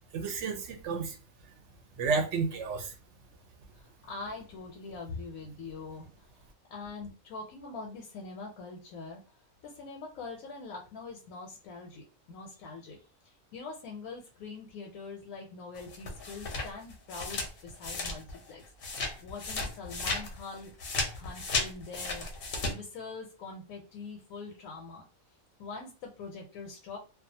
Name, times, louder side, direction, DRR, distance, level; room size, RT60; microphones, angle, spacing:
voice 1, 0.1-1.2 2.0-2.9, right 4 dB, 65° right, 5 dB, 0.8 m, -31 dB
voice 2, 3.7-9.4 9.6-20.7 21.2-22.3 22.7-25.0 25.6-27.0, left 4 dB, 80° left, 1 dB, 1.0 m, -44 dB
sound 1, 15.7-18.5 18.8-22.7, left 3 dB, 55° left, 0.7 m, -34 dB
2.3 x 2.3 x 2.6 m, 0.34 s
omnidirectional pair, 1.4 m